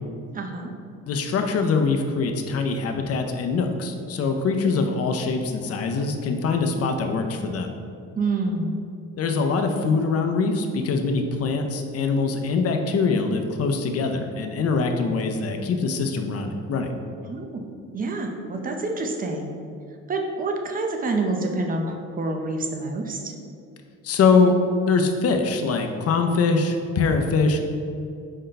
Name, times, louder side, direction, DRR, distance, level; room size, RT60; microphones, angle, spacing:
voice 1, 0.3-0.7 8.2-8.8 17.2-17.6 17.9-19.5 20.1-23.3, right 2 dB, 30° right, 3 dB, 0.5 m, -27 dB
voice 2, 1.1-7.7 9.2-16.9 24.0-24.5 24.9-27.6, left 4 dB, 55° left, 5 dB, 0.5 m, -23 dB
5.3 x 2.2 x 3.9 m, 2.4 s
cardioid pair, 90°, 30 cm